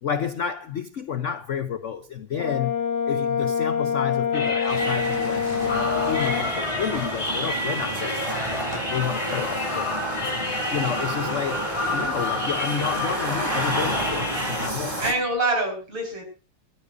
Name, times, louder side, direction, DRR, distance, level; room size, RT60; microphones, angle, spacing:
voice 1, 0.0-2.7 3.1-8.6 8.9-10.3 10.7-11.6 11.9-15.0, left 8 dB, 65° left, 0.7 m, -30 dB
Brass instrument, 2.4-6.5, left 7 dB, 30° left, 0.3 m, -25 dB
sound 1, 4.3-14.7, left 1 dB, 15° left, 3.2 m, -30 dB
sound 2, 4.7-15.1, right 1 dB, 15° right, 2.7 m, -31 dB
voice 2, 15.0-16.2, right 2 dB, 90° right, 6.0 m, -25 dB
25.5 x 13.5 x 2.6 m
omnidirectional pair, 2.3 m